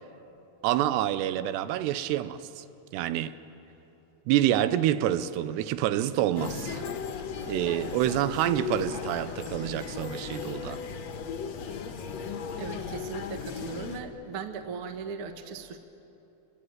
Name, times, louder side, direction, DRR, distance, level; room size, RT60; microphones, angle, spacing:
voice 1, 0.6-2.7 2.9-3.4 4.3-6.8 7.5-10.8, right 12 dB, 90° right, 2.9 m, -27 dB
sound 1, 6.4-14.0, left 6 dB, 60° left, 1.8 m, -36 dB
voice 2, 12.6-15.8, right 5 dB, 65° right, 1.3 m, -38 dB
27.5 x 20.0 x 9.4 m
omnidirectional pair, 4.7 m